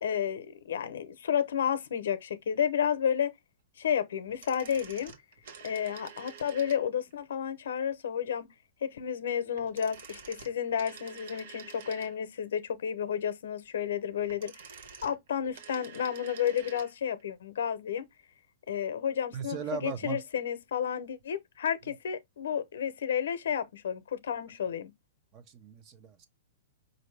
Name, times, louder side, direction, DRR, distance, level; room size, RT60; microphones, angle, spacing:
voice 1, 0.0-3.3 3.8-5.1 5.6-8.5 8.8-14.5 15.0-18.1 18.7-24.9, left 8 dB, 80° left, 0.7 m, -31 dB
sound 1, 4.3-7.1 9.5-12.4 14.1-16.9 17.2-17.3, right 6 dB, 60° right, 1.2 m, -49 dB
voice 2, 19.3-20.2 25.3-26.3, right 7 dB, 30° right, 0.7 m, -38 dB
5.2 x 2.6 x 3.3 m
hypercardioid pair, 160°, 0 cm